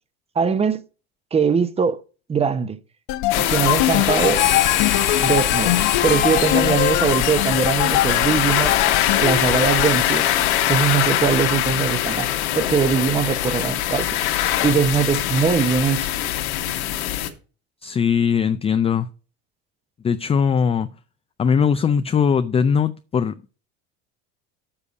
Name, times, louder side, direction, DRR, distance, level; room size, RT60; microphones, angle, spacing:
voice 1, 0.3-0.8 1.3-2.0 2.3-2.8 3.4-4.4 5.2-5.8 6.0-8.8 9.2-16.1, right 6 dB, 20° right, 0.8 m, -21 dB
sound 1, 3.1-9.9, left 14 dB, 65° left, 0.9 m, -23 dB
sound 2, 3.3-17.3, left 12 dB, 80° left, 1.5 m, -22 dB
Harmonica, 4.1-11.9, left 10 dB, 35° left, 0.9 m, -28 dB
voice 2, 17.8-19.1 20.0-20.9 21.4-23.3, left 7 dB, 20° left, 0.4 m, -20 dB
7.2 x 6.7 x 5.2 m
supercardioid pair, 105°, 33 cm